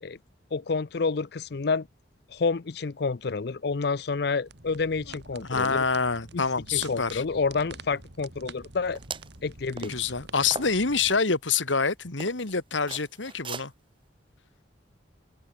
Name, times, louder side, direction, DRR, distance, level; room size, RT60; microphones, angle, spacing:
voice 1, 0.5-1.9 2.3-5.8 6.3-6.4 6.7-9.0 9.4-10.1, left 4 dB, 60° left, 0.5 m, -29 dB
sound 1, 4.5-11.2, right 3 dB, 65° right, 3.2 m, -47 dB
voice 2, 5.3-7.2 9.9-13.7, left 5 dB, 85° left, 2.1 m, -26 dB
sound 2, 9.0-9.3 9.8-10.1 10.5-11.2 11.7-11.8 12.2-12.5 12.9-13.7, right 4 dB, 25° right, 1.3 m, -38 dB
head